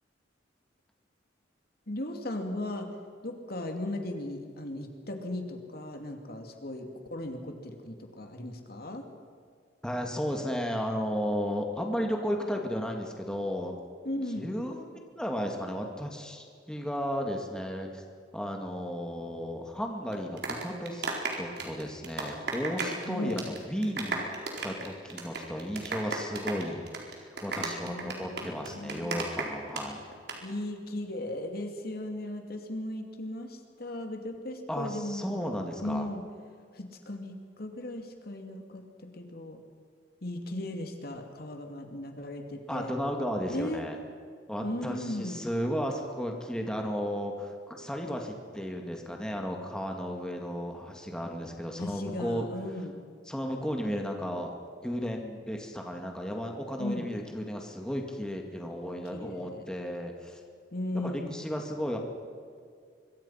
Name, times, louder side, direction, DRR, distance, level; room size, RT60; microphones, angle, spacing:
voice 1, 1.9-2.9 3.2-9.0 14.0-14.6 23.0-23.4 27.6-29.2 30.4-35.4 35.8-36.2 36.7-39.6 40.2-42.9 43.5-43.8 44.6-45.5 51.8-52.9 56.8-57.1 59.1-59.7 60.7-61.4, left 1 dB, 55° left, 4 dB, 2.7 m, -37 dB
voice 2, 9.8-13.8 14.4-14.9 15.2-18.0 18.3-21.1 21.4-24.2 24.6-30.0 34.7-36.1 42.7-44.0 44.5-52.5 53.3-54.5 54.8-60.4 60.9-62.0, equal, 5° left, 2 dB, 2.3 m, -34 dB
sound 1, 20.1-23.0 23.3-23.6 23.8-29.8 30.1-30.4, right 3 dB, 65° right, 4.2 m, -34 dB
25.0 x 23.5 x 5.8 m, 2.2 s
head